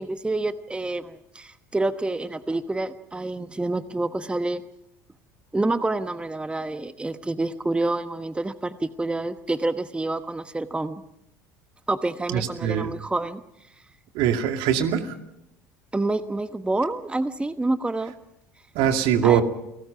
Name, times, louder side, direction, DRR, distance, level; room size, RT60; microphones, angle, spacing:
voice 1, 0.0-4.6 5.5-11.0 11.9-13.4 15.9-18.1 19.2-19.4, right 2 dB, 10° right, 11 dB, 1.1 m, -27 dB
voice 2, 12.3-12.9 14.1-15.1 18.7-19.4, right 9 dB, 65° right, 6 dB, 2.4 m, -22 dB
29.0 x 19.0 x 5.9 m, 0.84 s
hypercardioid pair, 65°, 9 cm